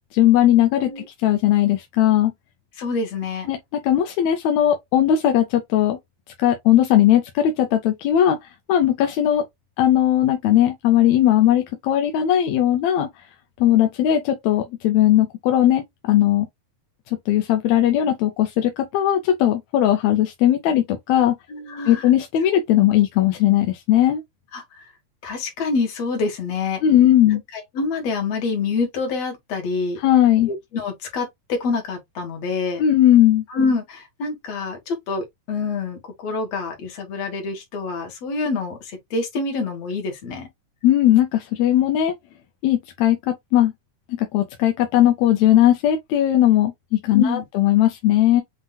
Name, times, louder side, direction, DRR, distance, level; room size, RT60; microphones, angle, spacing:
voice 1, 0.1-0.9 1.2-2.3 3.5-3.6 3.8-6.0 6.4-9.4 9.8-13.1 13.6-16.5 17.3-21.3 21.9-24.2 26.8-27.4 30.0-30.5 32.8-33.4 40.8-42.1 42.6-43.7 44.2-48.4, left 12 dB, 75° left, 1.7 m, -18 dB
voice 2, 2.8-3.5 21.5-22.0 24.5-24.8 25.2-26.8 27.5-30.0 30.5-32.8 33.5-40.5 47.2-47.4, left 4 dB, 55° left, 2.5 m, -26 dB
7.4 x 2.8 x 2.3 m
omnidirectional pair, 3.6 m